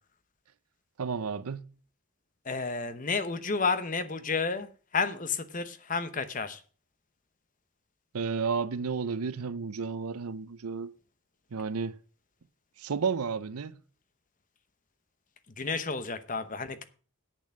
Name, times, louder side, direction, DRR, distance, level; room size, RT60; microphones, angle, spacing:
voice 1, 1.0-1.6 8.1-10.9 11.5-12.0 12.8-13.8, right 5 dB, 85° right, 0.6 m, -32 dB
voice 2, 2.5-6.6 15.6-16.8, left 4 dB, 35° left, 0.9 m, -31 dB
8.4 x 6.9 x 7.4 m
head